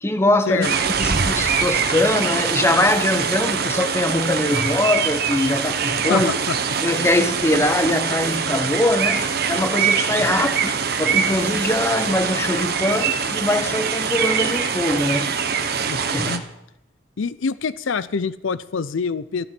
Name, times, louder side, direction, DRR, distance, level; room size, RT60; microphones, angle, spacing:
voice 1, 0.0-6.3 6.8-10.7 11.0-15.4 15.9-16.4, left 1 dB, 10° left, 0.7 m, -22 dB
sound 1, 0.6-16.4, right 6 dB, 50° right, 1.0 m, -23 dB
voice 2, 6.1-6.6 10.2-10.3 15.8-16.4 17.2-19.5, left 5 dB, 70° left, 0.5 m, -26 dB
14.0 x 11.5 x 5.9 m
head